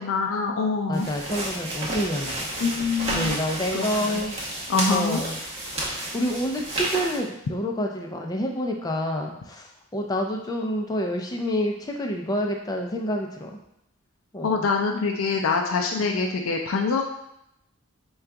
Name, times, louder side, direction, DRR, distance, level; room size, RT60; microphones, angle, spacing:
voice 1, 0.0-1.1 2.6-3.4 3.7-4.2 4.7-5.2 14.4-17.0, left 4 dB, 80° left, 2 dB, 0.4 m, -25 dB
voice 2, 0.9-2.5 3.1-4.4 4.9-5.4 5.7-13.5 14.3-14.7 16.0-16.1, equal, 20° left, 1 dB, 0.4 m, -28 dB
sound 1, 0.9-7.2, right 1 dB, 30° right, 0.9 m, -31 dB
3.8 x 2.3 x 4.6 m, 0.79 s
head